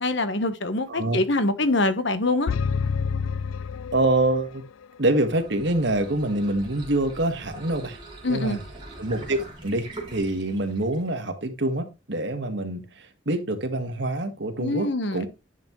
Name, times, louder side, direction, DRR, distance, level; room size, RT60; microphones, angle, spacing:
voice 1, 0.0-2.5 8.2-8.6 14.6-15.3, left 2 dB, 60° left, 1.2 m, -24 dB
voice 2, 0.9-1.2 3.9-4.6 5.0-8.0 8.3-8.6 9.0-15.3, right 1 dB, 55° right, 1.7 m, -26 dB
sound 1, 2.5-4.6, left 5 dB, 85° left, 0.4 m, -28 dB
sound 2, 5.1-11.2, right 2 dB, 25° right, 3.4 m, -42 dB
10.5 x 6.0 x 3.2 m
head